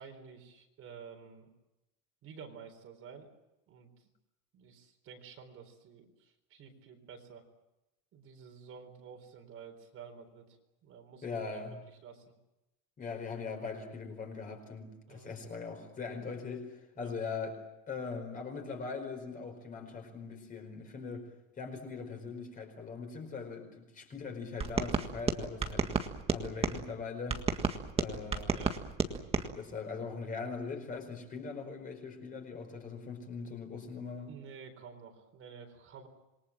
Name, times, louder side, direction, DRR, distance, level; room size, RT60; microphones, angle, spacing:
voice 1, 0.0-1.5 2.2-3.3 3.7-3.9 4.5-7.4 8.1-11.4 12.0-12.2 15.1-15.3 17.0-17.1 28.4-28.8 34.3-36.1, right 6 dB, 30° right, 4 dB, 4.1 m, -51 dB
voice 2, 11.2-11.8 13.0-17.6 17.9-21.3 21.6-25.9 26.3-27.4 27.9-28.6 29.0-29.1 29.5-34.3, left 4 dB, 20° left, 4 dB, 4.8 m, -41 dB
sound 1, 24.6-26.8 27.3-29.5, right 5 dB, 15° right, 1.7 m, -32 dB
27.5 x 23.0 x 7.5 m, 0.95 s
cardioid pair, 175°, 41 cm